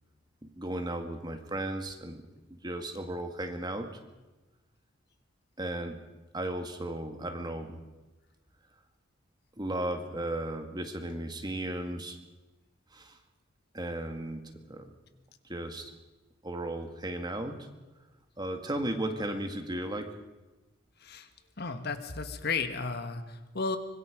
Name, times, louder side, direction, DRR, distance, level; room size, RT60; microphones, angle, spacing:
voice 1, 0.4-2.2 2.5-3.9 5.6-6.0 6.3-7.9 9.6-12.2 12.9-13.2 13.7-14.9 15.5-15.9 16.4-17.7 18.4-20.1, right 1 dB, 20° right, 5 dB, 2.0 m, -35 dB
voice 2, 21.0-21.3 21.6-23.8, left 4 dB, 60° left, 8 dB, 1.5 m, -34 dB
24.5 x 21.5 x 5.2 m, 1.1 s
head